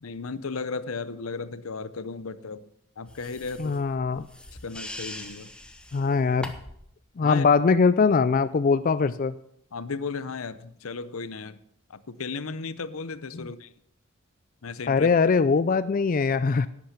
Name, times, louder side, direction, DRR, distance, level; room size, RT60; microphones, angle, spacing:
voice 1, 0.0-2.7 3.0-3.8 4.6-5.5 7.2-7.4 9.7-11.6 11.9-13.7 14.6-15.1, left 4 dB, 85° left, 15 dB, 0.7 m, -35 dB
sound 1, 3.1-6.9, left 1 dB, 5° left, 1.0 m, -42 dB
voice 2, 3.6-4.3 5.9-6.5 7.2-9.3 13.3-13.5 14.9-16.7, left 5 dB, 40° left, 14 dB, 0.4 m, -22 dB
11.5 x 8.9 x 6.8 m, 0.71 s
head